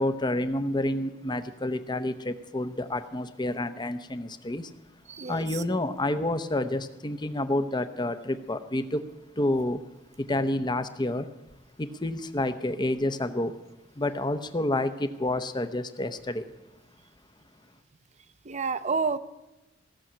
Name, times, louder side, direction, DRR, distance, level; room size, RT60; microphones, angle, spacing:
voice 1, 0.0-4.7 5.2-9.0 9.4-9.8 10.2-11.3 11.8-13.5 14.0-16.5, left 1 dB, 25° left, 0.8 m, -29 dB
voice 2, 5.1-5.4 18.4-19.2, right 4 dB, 35° right, 0.7 m, -29 dB
16.5 x 7.1 x 8.7 m
head